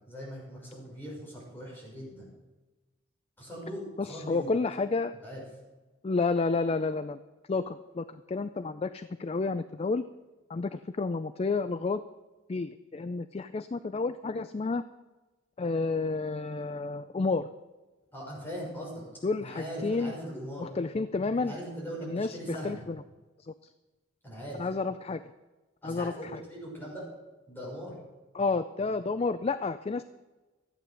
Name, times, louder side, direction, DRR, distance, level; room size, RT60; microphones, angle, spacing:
voice 1, 0.0-2.3 3.4-4.5 5.2-5.4 18.1-19.1 19.4-20.7 21.4-22.8 24.2-24.7 25.8-27.1 27.5-28.0, equal, 10° left, -4 dB, 6.0 m, -40 dB
voice 2, 4.0-5.1 6.0-7.2 7.5-10.0 10.5-12.0 12.5-14.8 15.6-17.5 19.2-20.1 20.6-21.5 22.1-23.0 23.4-23.5 24.6-25.2 25.8-26.1 28.3-30.0, left 3 dB, 30° left, 12 dB, 0.4 m, -30 dB
14.0 x 9.2 x 6.5 m, 1.2 s
head